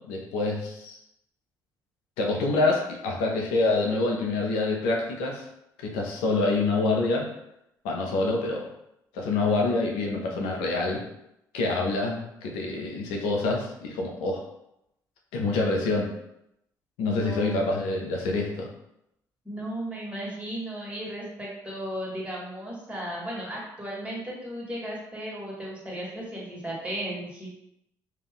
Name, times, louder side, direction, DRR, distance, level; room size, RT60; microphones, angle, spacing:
voice 1, 0.1-1.0 2.2-5.5 5.8-7.3 7.8-8.7 9.1-11.0 11.5-14.4 15.3-16.1 17.0-18.7, left 3 dB, 85° left, 0 dB, 0.5 m, -26 dB
voice 2, 17.0-17.8 19.4-27.6, right 1 dB, 15° right, -4 dB, 1.4 m, -35 dB
2.5 x 2.3 x 3.5 m, 0.81 s
supercardioid pair, 60°, 8 cm